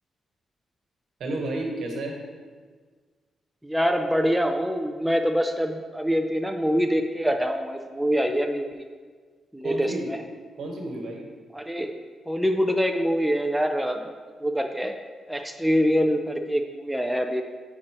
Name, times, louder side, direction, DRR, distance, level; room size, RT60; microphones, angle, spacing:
voice 1, 1.2-2.2 9.6-10.1 10.6-11.3, right 2 dB, 70° right, 1 dB, 1.2 m, -31 dB
voice 2, 3.6-8.9 9.5-10.2 11.5-11.9 12.3-14.1 14.4-14.9 15.3-17.4, equal, 5° right, 4 dB, 0.4 m, -25 dB
9.1 x 4.3 x 3.0 m, 1.5 s
cardioid pair, 120°, 0 cm